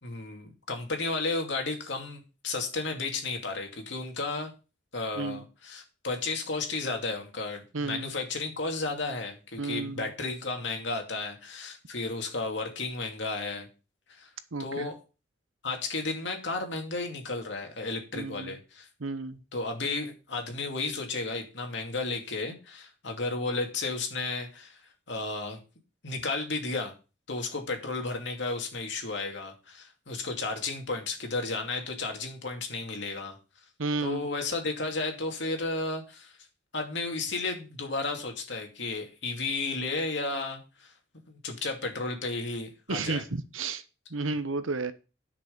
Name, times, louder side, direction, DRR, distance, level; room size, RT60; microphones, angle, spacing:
voice 1, 0.0-4.5 4.9-13.7 14.1-14.3 14.6-15.0 15.6-18.9 19.5-24.8 25.1-25.6 26.0-26.9 27.3-33.4 34.0-36.4 36.7-40.9 41.3-43.2, left 3 dB, 60° left, 3 dB, 2.5 m, -33 dB
voice 2, 7.7-8.1 9.6-10.1 14.5-14.9 18.1-18.6 19.0-19.4 33.8-34.3 42.9-43.8 44.1-44.9, right 3 dB, 85° right, 13 dB, 0.9 m, -32 dB
10.5 x 6.3 x 5.3 m, 0.32 s
head